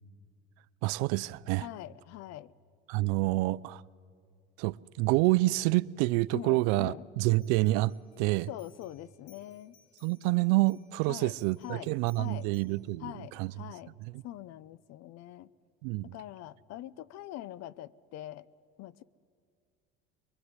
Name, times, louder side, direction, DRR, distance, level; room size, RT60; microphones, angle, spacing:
voice 1, 0.8-1.7 2.9-3.8 4.6-8.5 10.0-13.1 13.4-13.5 15.8-16.1, right 20 dB, 75° right, 0.6 m, -28 dB
voice 2, 1.6-2.5 3.2-3.4 6.3-7.1 8.5-9.8 11.1-11.4 11.6-11.9 12.2-12.5 13.0-13.9 14.2-15.5 16.0-18.5 18.8-19.0, left 14 dB, 60° left, 0.8 m, -43 dB
sound 1, 7.3-12.9, left 8 dB, 85° left, 6.8 m, -65 dB
24.0 x 22.5 x 9.7 m
supercardioid pair, 100°, 30 cm